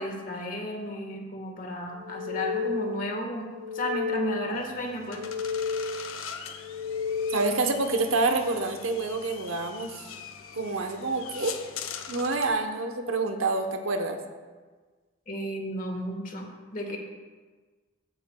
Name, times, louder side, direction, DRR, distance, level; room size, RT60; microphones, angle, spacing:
voice 1, 0.0-3.5 3.7-5.2 15.3-17.0, equal, 40° left, 2 dB, 1.4 m, -33 dB
sound 1, 1.9-3.1 3.4-4.6 4.9-6.1 6.5-7.6, left 5 dB, 20° right, 1.8 m, -32 dB
sound 2, 4.5-12.6, left 7 dB, 80° left, 0.7 m, -42 dB
voice 2, 7.3-10.1 10.5-11.6 12.1-14.2, right 3 dB, 75° right, 5 dB, 0.9 m, -27 dB
14.5 x 9.1 x 2.3 m, 1.4 s
head